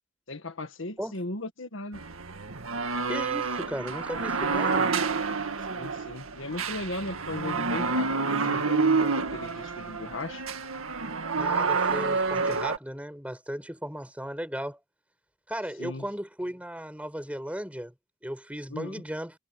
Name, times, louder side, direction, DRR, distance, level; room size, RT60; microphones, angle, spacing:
voice 1, 0.3-2.0 5.7-10.4 15.8-16.1 18.7-19.0, left 2 dB, 65° left, 1.7 m, -37 dB
sound 1, 1.9-12.8, right 4 dB, 85° right, 1.9 m, -28 dB
voice 2, 3.1-5.0 11.4-14.8 15.5-17.9 18.2-19.3, equal, 5° right, 6.3 m, -36 dB
head